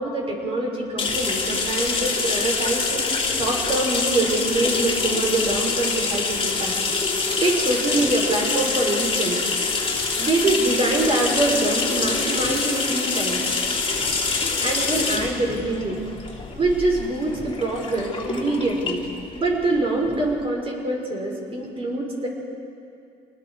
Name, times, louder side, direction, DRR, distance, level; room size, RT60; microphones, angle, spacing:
voice 1, 0.0-6.7 7.4-9.4 10.2-13.4 14.6-16.0 16.5-19.0 19.3-22.3, right 2 dB, 35° right, -1 dB, 5.7 m, -24 dB
sound 1, 1.0-20.4, left 4 dB, 30° left, 3.2 m, -25 dB
28.5 x 20.0 x 4.9 m, 2.5 s
cardioid pair, 110°, 17 cm